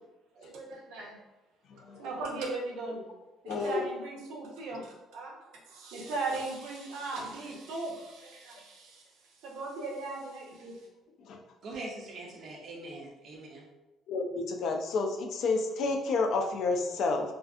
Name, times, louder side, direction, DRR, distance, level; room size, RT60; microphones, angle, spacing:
voice 1, 0.4-1.2 2.0-3.0 3.4-5.4 5.7-9.0 9.4-10.8, right 3 dB, 85° right, 0.6 m, -38 dB
voice 2, 3.5-3.8 14.1-14.2 14.6-15.1 15.4-17.2, left 3 dB, 50° left, 0.3 m, -28 dB
voice 3, 11.6-13.7, right 2 dB, 45° right, 0.4 m, -42 dB
2.5 x 2.4 x 2.3 m
cardioid pair, 170°, 0 cm